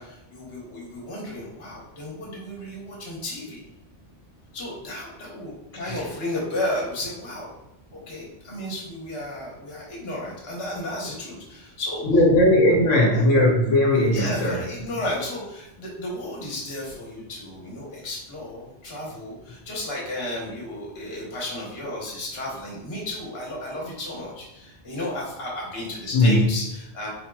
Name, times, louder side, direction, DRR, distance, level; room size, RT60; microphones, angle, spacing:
voice 1, 0.0-3.6 4.5-7.5 7.9-12.0 13.1-13.2 14.1-27.1, left 1 dB, 60° left, -4 dB, 1.3 m, -33 dB
voice 2, 12.1-14.6 26.1-26.5, left 1 dB, 85° left, -3 dB, 1.1 m, -18 dB
4.6 x 2.8 x 2.3 m, 0.88 s
omnidirectional pair, 1.2 m